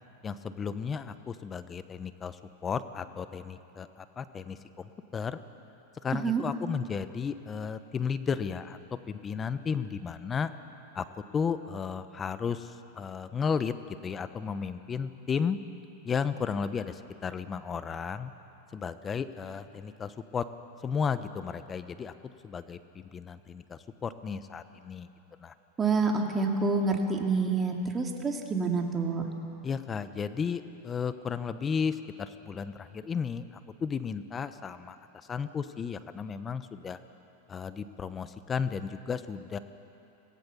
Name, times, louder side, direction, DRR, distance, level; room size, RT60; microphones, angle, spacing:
voice 1, 0.2-5.4 6.0-8.8 9.1-10.5 10.9-11.1 11.3-15.6 16.0-18.3 18.7-20.5 20.8-22.1 22.4-25.1 25.4-25.5 29.6-37.0 37.5-39.6, left 6 dB, 25° left, 12 dB, 1.0 m, -34 dB
voice 2, 25.8-29.3, right 4 dB, 20° right, 2 dB, 2.5 m, -27 dB
24.5 x 17.5 x 7.1 m, 2.9 s
hypercardioid pair, 115°, 0 cm